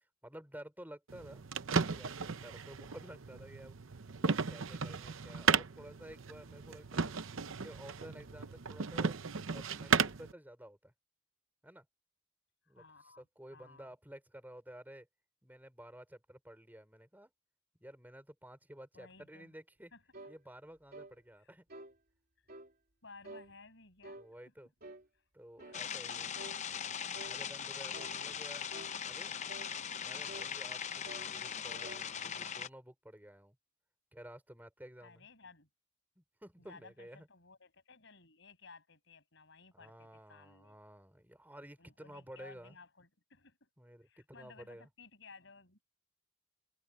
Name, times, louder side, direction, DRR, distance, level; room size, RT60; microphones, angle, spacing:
voice 1, 0.0-1.4 1.8-3.8 4.2-7.2 7.6-9.2 9.5-10.9 11.6-11.9 12.7-15.1 15.4-17.3 17.8-19.9 20.3-21.7 24.2-24.7 25.3-26.3 27.2-28.7 29.0-29.3 29.8-33.6 34.1-35.3 36.1-37.3 39.7-42.8 43.8-44.9, right 1 dB, 10° right, 4.9 m, -53 dB
sound 1, 1.1-10.3, right 5 dB, 85° right, 0.8 m, -35 dB
voice 2, 12.7-13.3 13.5-13.9 18.9-19.6 19.9-20.0 21.4-21.5 23.0-24.2 25.6-26.4 35.0-35.7 36.6-40.8 41.8-43.7 44.0-45.8, left 4 dB, 65° left, 7.5 m, -57 dB
sound 2, 20.1-20.4 20.9-21.1 21.7-21.9 22.5-22.7 23.2-23.5 24.0-24.3 24.8-25.1 25.6-25.8 26.4-26.6 27.1-27.4 27.9-28.2 28.7-28.9 29.5-29.7 30.3-30.5 31.0-31.3 31.6-32.1, right 2 dB, 50° right, 3.3 m, -50 dB
sound 3, 25.7-32.7, left 7 dB, 35° left, 0.7 m, -40 dB
head